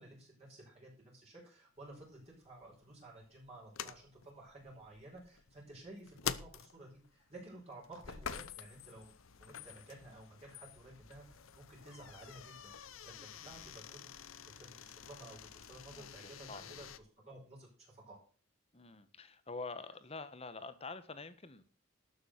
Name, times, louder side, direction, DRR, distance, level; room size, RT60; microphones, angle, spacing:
voice 1, 0.0-12.7 13.0-16.9 17.2-18.2, right 2 dB, 30° right, -3 dB, 5.1 m, -54 dB
sound 1, 1.8-17.0, left 7 dB, 70° left, 0.8 m, -48 dB
voice 2, 15.8-16.7 18.7-21.6, left 3 dB, 30° left, 12 dB, 1.1 m, -47 dB
12.5 x 7.1 x 6.5 m, 0.40 s
head